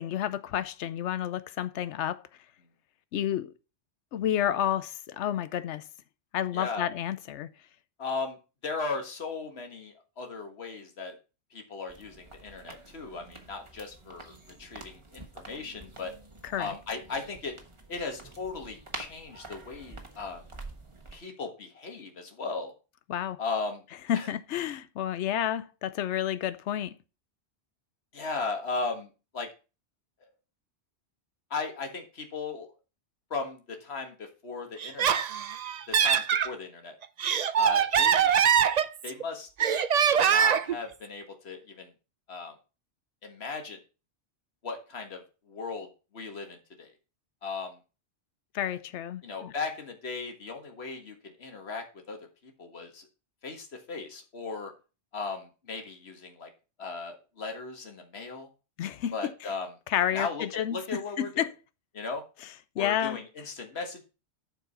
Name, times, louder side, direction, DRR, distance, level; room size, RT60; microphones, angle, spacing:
voice 1, 0.0-2.2 3.1-3.5 4.1-5.8 6.3-7.5 16.4-16.7 23.1-23.4 24.1-26.9 48.5-49.5 58.8-59.3 59.9-61.5 62.8-63.2, left 10 dB, 85° left, 1.0 m, -30 dB
voice 2, 6.5-6.9 8.0-8.4 8.6-11.2 11.5-16.1 16.6-17.6 17.9-20.4 21.1-22.7 23.4-23.8 24.1-24.3 28.1-29.5 31.5-32.7 33.3-35.2 35.9-37.0 37.6-38.3 39.0-39.5 40.2-41.9 42.3-42.5 43.2-43.8 44.6-45.2 45.5-45.9 46.1-46.9 47.4-47.8 48.6-48.7 49.2-53.1 53.4-54.7 55.1-56.5 56.8-58.5 59.1-59.7 60.1-61.5 61.9-62.2 62.8-64.0, left 4 dB, 65° left, 1.9 m, -37 dB
sound 1, 11.9-21.1, right 2 dB, 25° right, 1.4 m, -47 dB
Laughter, 34.8-36.5 37.0-39.2 39.6-40.8, right 8 dB, 50° right, 0.5 m, -23 dB
11.0 x 4.7 x 5.5 m
omnidirectional pair, 1.2 m